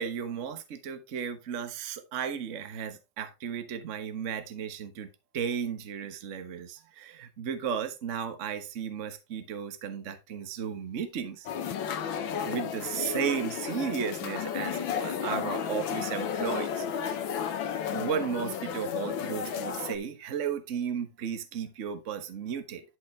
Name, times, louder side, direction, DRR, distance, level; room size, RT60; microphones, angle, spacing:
voice 1, 0.0-5.1 5.3-11.5 12.2-16.9 17.9-22.8, right 7 dB, 45° right, 1.3 m, -34 dB
sound 1, 11.5-20.0, left 8 dB, 80° left, 1.8 m, -33 dB
11.0 x 5.6 x 3.2 m
omnidirectional pair, 2.1 m